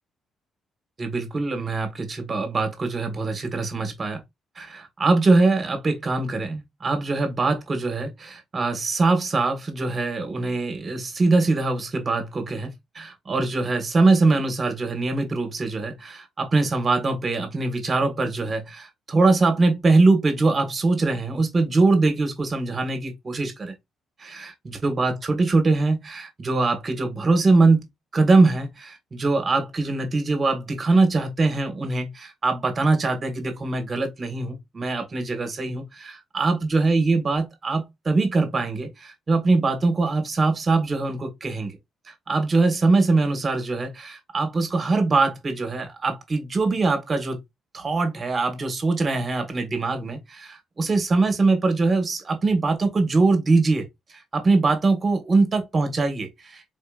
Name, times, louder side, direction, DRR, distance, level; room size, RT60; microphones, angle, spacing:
voice 1, 1.0-4.2 4.6-23.7 24.2-27.8 28.1-41.7 42.3-47.4 47.7-53.9 54.3-56.6, right 3 dB, 35° right, 1.5 m, -22 dB
4.3 x 2.9 x 2.4 m
cardioid pair, 80°, 0 cm